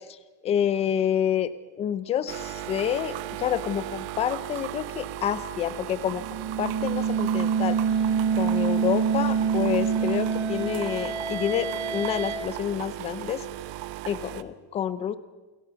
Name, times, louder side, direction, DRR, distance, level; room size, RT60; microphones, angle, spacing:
voice 1, 0.4-1.5 1.8-6.2 6.6-7.8 8.3-13.4 14.1-15.1, left 9 dB, 20° left, 14 dB, 0.7 m, -28 dB
sound 1, 2.3-14.4, right 14 dB, 55° right, 1.1 m, -37 dB
sound 2, 6.1-12.4, right 6 dB, 85° right, 6.5 m, -26 dB
29.0 x 18.0 x 5.8 m, 1.2 s
supercardioid pair, 175°, 33 cm